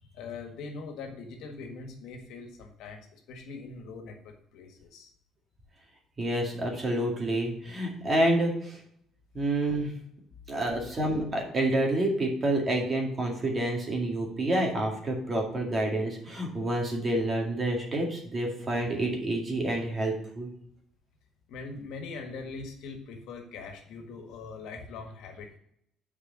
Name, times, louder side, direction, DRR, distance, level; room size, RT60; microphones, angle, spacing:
voice 1, 0.0-5.1 21.5-25.6, left 4 dB, 80° left, 4 dB, 1.7 m, -42 dB
voice 2, 6.2-8.8 9.3-9.9 10.5-20.5, right 1 dB, 25° right, 0 dB, 2.1 m, -28 dB
6.7 x 4.8 x 6.5 m, 0.70 s
cardioid pair, 140°, 0 cm